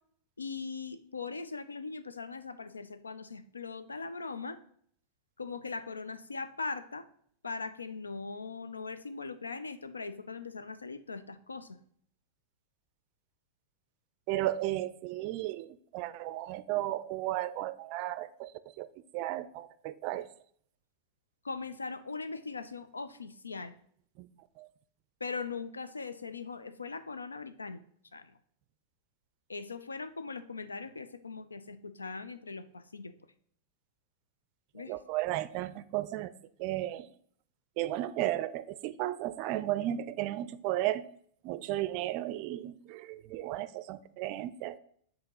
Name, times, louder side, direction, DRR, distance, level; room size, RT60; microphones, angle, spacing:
voice 1, 0.4-4.6 5.4-7.1 7.4-11.8 21.4-23.8 25.2-27.8 28.1-28.3 29.5-33.1 34.7-34.9, left 4 dB, 80° left, 11 dB, 0.5 m, -40 dB
voice 2, 14.3-15.7 15.9-18.5 18.8-18.9 19.1-20.3 24.2-24.3 24.6-24.7 34.9-36.3 36.6-37.1 37.8-41.0 41.4-44.8, right 14 dB, 45° right, 14 dB, 0.4 m, -34 dB
7.8 x 2.8 x 5.6 m, 0.62 s
figure-of-eight pair, 95°, 0 cm